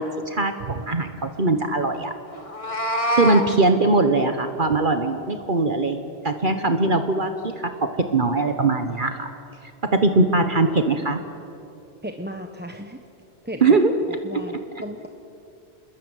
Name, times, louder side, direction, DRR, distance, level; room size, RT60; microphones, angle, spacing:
voice 1, 0.0-2.1 3.1-9.3 9.8-11.2 13.6-13.9, right 3 dB, 50° right, 7 dB, 1.4 m, -21 dB
Meow, 2.4-3.5, equal, 30° left, 1.9 m, -24 dB
voice 2, 12.0-13.0 13.4-13.8 14.2-15.1, equal, 10° right, 4 dB, 1.1 m, -34 dB
28.0 x 21.0 x 9.1 m, 2.6 s
omnidirectional pair, 1.1 m